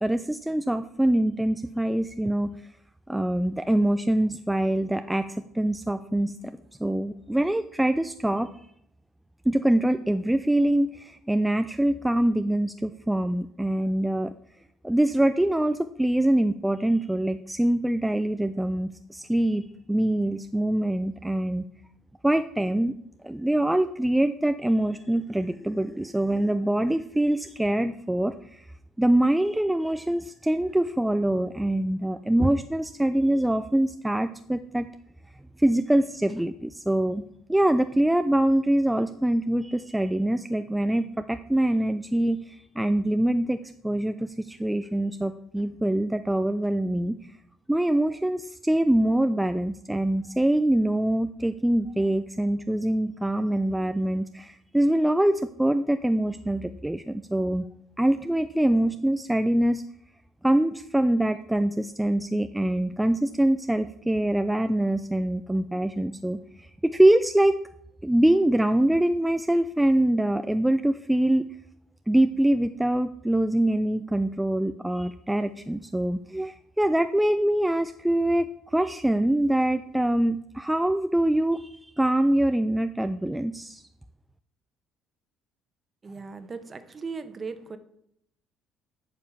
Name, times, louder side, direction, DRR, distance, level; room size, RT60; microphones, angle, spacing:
voice 1, 0.0-2.5 3.1-6.5 6.8-8.5 9.5-14.3 14.8-21.6 22.2-22.9 23.2-28.7 29.0-34.9 35.6-37.2 37.5-47.2 47.7-57.6 58.0-59.8 60.4-67.6 68.0-71.5 72.1-83.8, right 1 dB, 5° right, 9 dB, 0.5 m, -24 dB
voice 2, 86.0-87.8, right 4 dB, 30° right, 10 dB, 1.2 m, -37 dB
9.0 x 5.2 x 7.2 m, 0.72 s
supercardioid pair, 75°, 0 cm